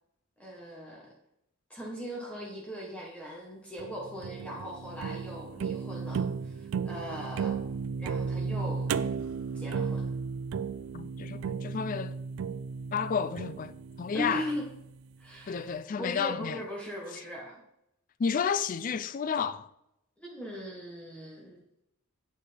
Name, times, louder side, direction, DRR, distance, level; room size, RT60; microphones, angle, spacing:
voice 1, 0.4-1.1 1.7-7.6 8.0-9.0 9.5-10.0 14.1-14.6 15.2-17.6 20.2-21.6, equal, 5° left, 1.1 m, -39 dB
sound 1, 3.8-15.0, right 5 dB, 65° right, 0.3 m, -34 dB
voice 2, 10.9-12.1 12.9-14.5 15.5-16.6 18.2-19.7, left 6 dB, 35° left, 0.3 m, -31 dB
8.9 x 6.3 x 3.3 m
head